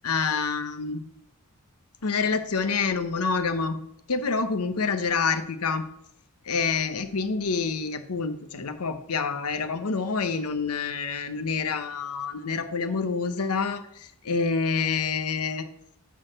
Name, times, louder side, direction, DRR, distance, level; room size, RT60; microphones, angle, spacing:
voice 1, 0.0-1.0 2.0-3.8 4.1-5.8 6.4-15.6, left 5 dB, 85° left, 10 dB, 0.9 m, -27 dB
11.5 x 4.0 x 7.7 m, 0.76 s
head